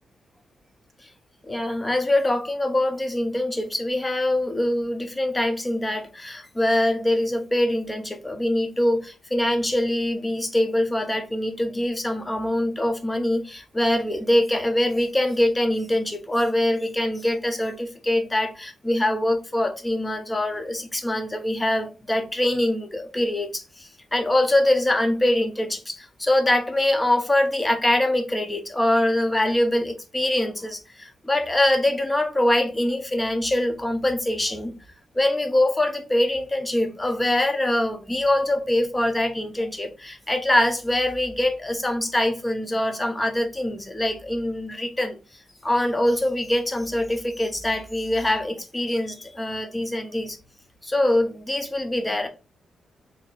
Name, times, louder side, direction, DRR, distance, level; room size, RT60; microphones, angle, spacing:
voice 1, 1.5-34.7 35.1-45.2 45.6-50.4 50.8-52.3, left 1 dB, 10° left, 0.5 m, -23 dB
4.1 x 2.6 x 2.2 m
wide cardioid pair, 170°, 0 cm